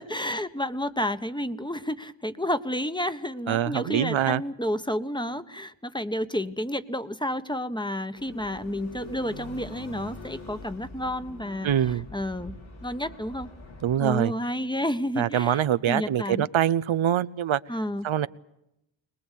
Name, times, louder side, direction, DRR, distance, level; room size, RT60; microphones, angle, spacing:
voice 1, 0.0-11.7 12.1-12.5 12.8-13.5 14.0-15.6 15.9-16.5 17.7-18.1, left 1 dB, 10° left, 11 dB, 1.3 m, -30 dB
voice 2, 3.5-4.4 11.6-12.1 13.8-14.3 15.2-17.6 18.0-18.3, right 10 dB, 80° right, 14 dB, 0.8 m, -24 dB
sound 1, 8.2-14.0, left 2 dB, 80° left, 7.0 m, -43 dB
22.5 x 20.5 x 8.5 m, 0.84 s
cardioid pair, 60°, 47 cm